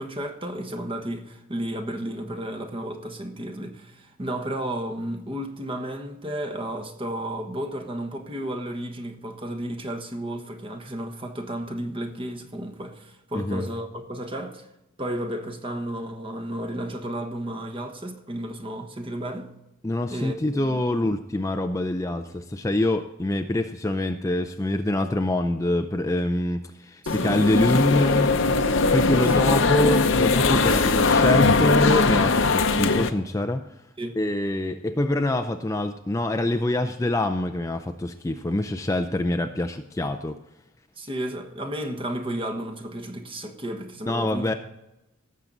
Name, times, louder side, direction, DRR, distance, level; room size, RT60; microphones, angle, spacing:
voice 1, 0.0-14.7 15.0-19.5 20.1-20.8 27.0-27.5 28.7-29.3 34.0-34.2 41.0-44.5, right 1 dB, 25° right, 1.2 m, -33 dB
voice 2, 19.8-28.3 28.9-33.6 34.2-40.4 44.1-44.5, left 1 dB, 15° left, 0.4 m, -25 dB
sound 1, 27.1-33.1, left 3 dB, 65° left, 0.8 m, -20 dB
17.5 x 7.4 x 4.0 m
head